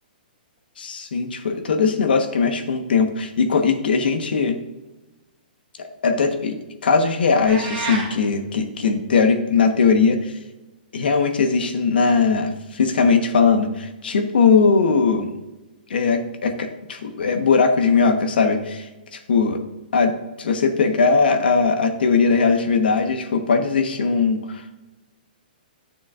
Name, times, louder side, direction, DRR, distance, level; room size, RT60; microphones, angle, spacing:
voice 1, 0.8-4.6 5.8-10.4 10.9-15.4 15.9-19.6 19.9-24.6, left 5 dB, 75° left, 7 dB, 1.1 m, -20 dB
sound 1, 7.5-8.1, right 3 dB, 20° right, 2.0 m, -28 dB
11.0 x 7.1 x 2.4 m, 1.1 s
hypercardioid pair, 170°, 5 cm